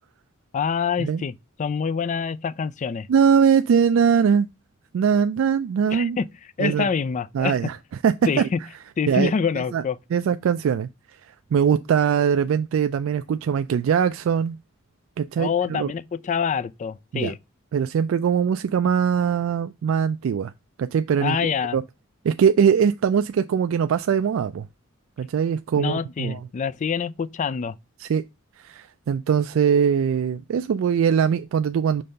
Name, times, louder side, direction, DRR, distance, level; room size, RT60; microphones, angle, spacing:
voice 1, 0.5-1.3 1.6-3.1 5.9-6.3 6.6-7.6 8.3-8.6 9.0-10.0 15.4-17.4 21.2-21.8 25.7-27.8, left 6 dB, 35° left, 0.3 m, -26 dB
voice 2, 3.1-4.5 4.9-6.2 6.6-6.9 7.3-7.8 8.0-8.5 9.1-9.8 10.1-10.9 11.5-14.6 15.2-15.9 17.1-17.3 17.7-20.5 20.8-21.4 21.7-21.8 22.2-24.7 25.2-26.4 28.0-28.2 28.6-32.0, right 7 dB, 75° right, 0.3 m, -21 dB
5.4 x 3.3 x 5.3 m
head